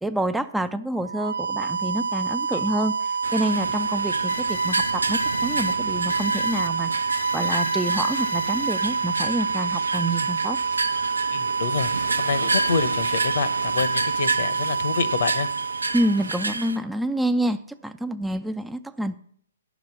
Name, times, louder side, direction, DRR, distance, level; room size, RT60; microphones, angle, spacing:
voice 1, 0.0-6.9 7.3-10.6 15.9-19.1, right 1 dB, 5° right, 10 dB, 0.4 m, -27 dB
sound 1, 1.0-16.8, right 5 dB, 65° right, 0.5 m, -27 dB
sound 2, 3.2-16.8, right 3 dB, 90° right, 0.8 m, -30 dB
sound 3, 4.3-4.9 5.2-5.7 6.1-6.7 7.1-9.4, right 1 dB, 85° left, 1.0 m, -32 dB
voice 2, 11.3-15.5, left 5 dB, 60° left, 15 dB, 0.9 m, -27 dB
10.5 x 6.1 x 7.2 m, 0.64 s
figure-of-eight pair, 130°, 0 cm